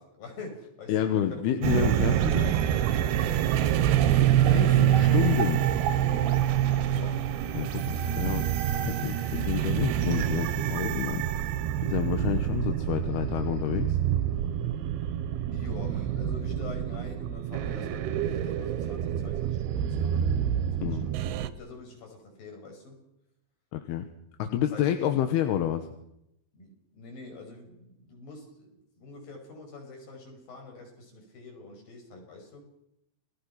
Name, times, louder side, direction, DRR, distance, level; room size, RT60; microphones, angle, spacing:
voice 1, 0.0-1.4 3.2-4.1 6.9-7.2 15.5-20.3 20.6-21.3 21.6-23.0 24.7-24.9 26.5-32.7, left 3 dB, 50° left, 2 dB, 7.1 m, -45 dB
voice 2, 0.9-2.6 4.4-5.6 7.5-11.3 11.8-14.0 20.8-21.1 23.7-24.0 24.4-25.9, left 10 dB, 70° left, 7 dB, 3.0 m, -29 dB
sound 1, 1.6-21.5, right 10 dB, 75° right, 2.9 m, -26 dB
29.0 x 21.0 x 5.9 m, 0.83 s
omnidirectional pair, 5.1 m